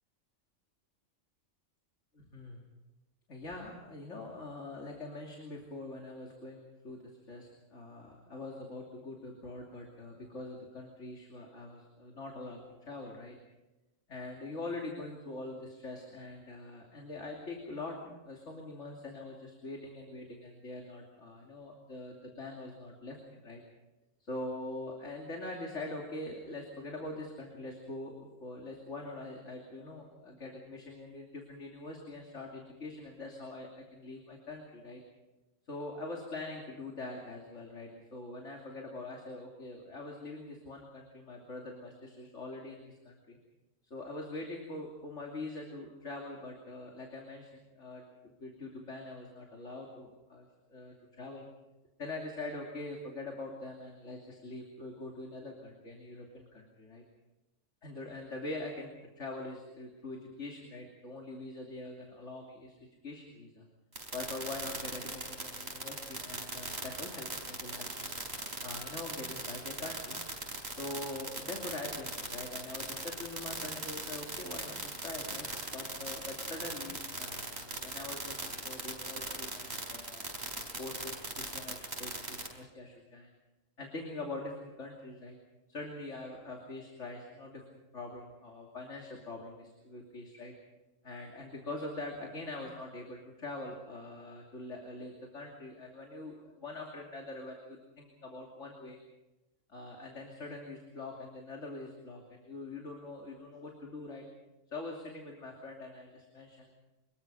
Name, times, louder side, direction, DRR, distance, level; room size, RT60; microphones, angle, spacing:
voice 1, 2.1-2.6 3.3-7.0 7.3-13.4 14.1-23.6 24.3-35.0 35.7-43.4 43.8-51.5 52.0-57.0 57.8-63.6 64.1-68.1 68.6-70.2 70.8-83.3 83.8-85.4 85.7-90.5 91.0-99.0 99.7-104.3 104.7-106.7, left 2 dB, 65° left, 0 dB, 3.2 m, -44 dB
sound 1, 63.9-82.5, right 2 dB, 55° right, 4.7 m, -39 dB
25.5 x 21.5 x 5.5 m, 1.0 s
omnidirectional pair, 1.3 m